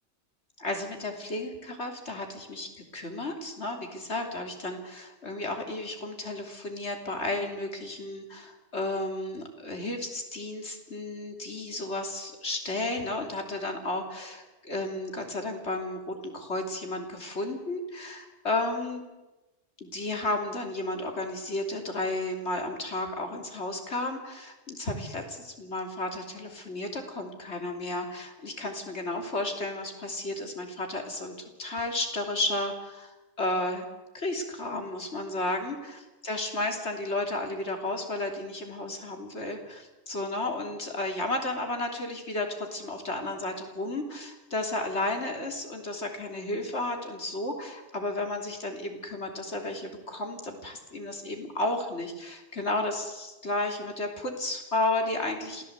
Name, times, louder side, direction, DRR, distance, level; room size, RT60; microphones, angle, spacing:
voice 1, 0.6-19.0 19.8-31.3 31.6-33.9 34.1-55.6, left 2 dB, 70° left, 3 dB, 3.5 m, -33 dB
27.0 x 17.0 x 8.1 m, 1.1 s
omnidirectional pair, 1.2 m